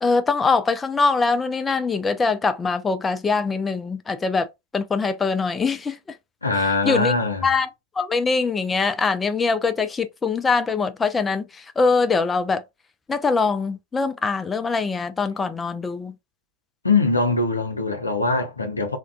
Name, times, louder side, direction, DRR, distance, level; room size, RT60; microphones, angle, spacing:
voice 1, 0.0-6.2 6.8-7.1 7.4-7.7 8.0-12.6 13.1-16.1, left 4 dB, 15° left, 0.3 m, -23 dB
voice 2, 6.4-7.5 16.8-19.0, left 3 dB, 80° left, 0.6 m, -22 dB
2.4 x 2.1 x 2.3 m
figure-of-eight pair, 90°, 0 cm